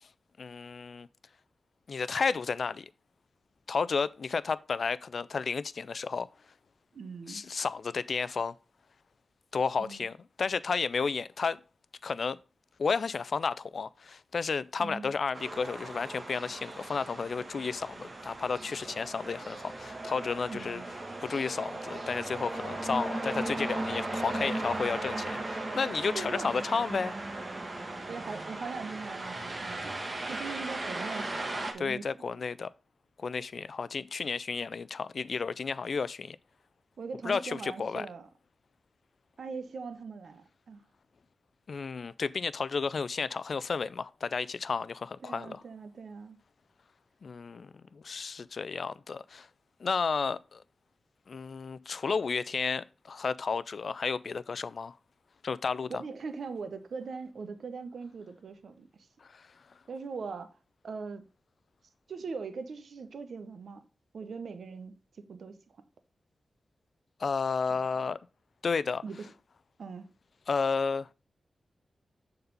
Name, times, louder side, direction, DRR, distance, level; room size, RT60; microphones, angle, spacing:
voice 1, 0.4-1.1 1.9-2.9 3.7-6.3 7.3-8.5 9.5-11.6 12.0-12.4 12.8-20.8 21.2-27.1 31.8-32.7 33.2-36.4 37.2-38.1 41.7-45.6 47.2-49.5 49.8-50.6 51.3-54.9 55.4-55.9 59.3-59.4 67.2-68.2 68.6-69.0 70.5-71.1, left 5 dB, 65° left, 0.3 m, -32 dB
voice 2, 6.9-7.5 9.8-10.1 14.8-15.1 20.5-21.0 26.1-26.5 28.1-32.1 37.0-38.3 39.4-40.8 45.2-46.4 56.0-59.1 59.9-60.5 60.8-61.2 62.1-63.8 64.1-65.8 67.7-68.0 69.0-69.3 69.8-70.1, right 5 dB, 75° right, 0.8 m, -41 dB
sound 1, 15.3-31.7, right 2 dB, 35° right, 1.3 m, -37 dB
6.8 x 4.1 x 5.2 m
wide cardioid pair, 90°, 0 cm